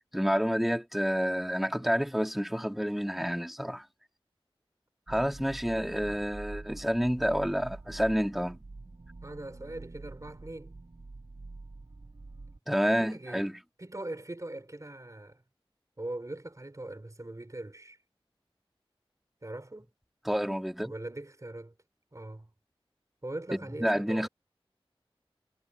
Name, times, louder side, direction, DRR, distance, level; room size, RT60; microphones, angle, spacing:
voice 1, 0.1-3.9 5.1-8.6 12.7-13.5 20.2-20.9 23.8-24.3, equal, ahead, 2.8 m, -29 dB
sound 1, 5.1-12.6, right 3 dB, 65° right, 5.1 m, -46 dB
voice 2, 9.2-10.7 13.0-13.5 13.8-15.4 16.0-18.0 19.4-19.9 20.8-21.8 22.1-22.5 23.2-24.3, right 1 dB, 35° right, 4.2 m, -41 dB
wide cardioid pair, 55°, 10 cm